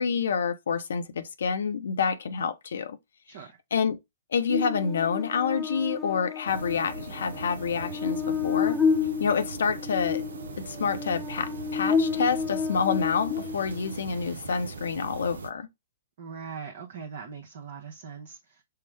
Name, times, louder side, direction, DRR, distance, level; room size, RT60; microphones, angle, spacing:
voice 1, 0.0-3.0 3.7-4.0 4.3-8.8 9.2-10.2 10.6-15.7, left 6 dB, 65° left, 0.6 m, -28 dB
voice 2, 3.3-3.6 16.2-18.6, right 6 dB, 55° right, 0.8 m, -41 dB
Buzz, 4.5-14.0, left 6 dB, 5° left, 0.6 m, -30 dB
sound 1, 6.5-15.5, right 4 dB, 70° right, 0.5 m, -40 dB
5.6 x 2.0 x 3.2 m
figure-of-eight pair, 115°, 0 cm